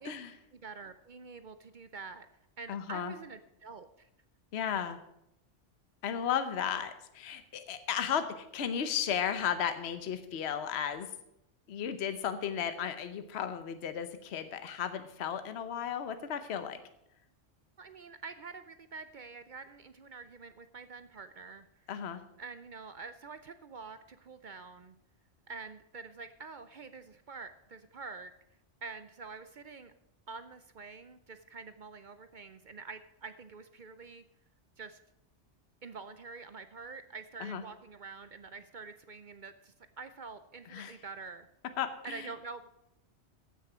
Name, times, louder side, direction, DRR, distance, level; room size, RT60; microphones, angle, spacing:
voice 1, 0.5-2.3 2.6-4.1 17.8-21.9 22.4-25.0 25.5-28.3 28.8-29.9 30.3-34.2 34.8-35.0 35.8-41.5 42.0-42.7, right 4 dB, 50° right, 11 dB, 0.6 m, -46 dB
voice 2, 2.7-3.1 4.5-5.0 6.0-11.1 11.7-16.8 21.9-22.2 37.4-37.6 40.7-41.0 41.8-42.3, left 8 dB, 65° left, 10 dB, 1.1 m, -34 dB
15.0 x 6.7 x 6.1 m, 0.81 s
omnidirectional pair, 1.2 m